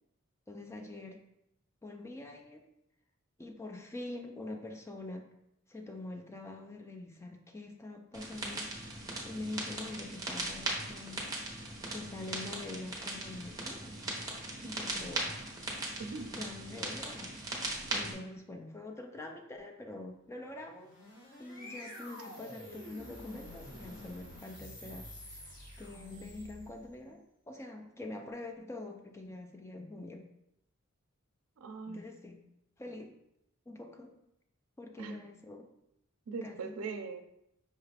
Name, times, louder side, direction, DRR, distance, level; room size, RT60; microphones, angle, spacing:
voice 1, 0.5-1.2 1.8-2.7 3.4-5.3 5.7-8.7 9.2-11.3 11.9-14.0 14.6-15.5 16.3-17.3 17.9-21.1 21.4-30.3 31.9-32.4 32.8-33.2 33.7-34.2 34.8-35.7 36.4-36.7, left 2 dB, 15° left, 3 dB, 0.4 m, -45 dB
sound 1, 8.1-18.1, right 2 dB, 20° right, 0.8 m, -39 dB
sound 2, 20.6-26.9, left 1 dB, 45° left, 1.6 m, -49 dB
voice 2, 31.6-32.0 35.0-35.2 36.3-37.2, right 4 dB, 90° right, 7 dB, 0.5 m, -40 dB
5.5 x 2.4 x 3.3 m, 0.80 s
head